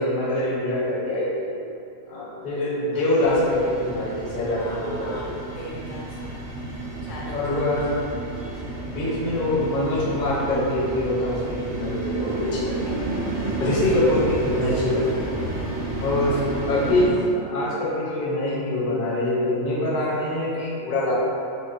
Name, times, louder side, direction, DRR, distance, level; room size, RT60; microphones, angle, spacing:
voice 1, 0.0-1.5 2.1-5.3 7.3-7.9 8.9-12.9 13.6-15.4 16.0-16.4 16.7-21.1, left 1 dB, 50° left, -6 dB, 0.8 m, -24 dB
sound 1, 3.2-17.1, right 2 dB, 5° right, 0.6 m, -31 dB
voice 2, 4.6-6.5 7.0-7.6 13.6-14.1 16.0-16.7, left 1 dB, 80° left, -5 dB, 1.0 m, -40 dB
4.9 x 2.1 x 2.5 m, 2.6 s
omnidirectional pair, 1.3 m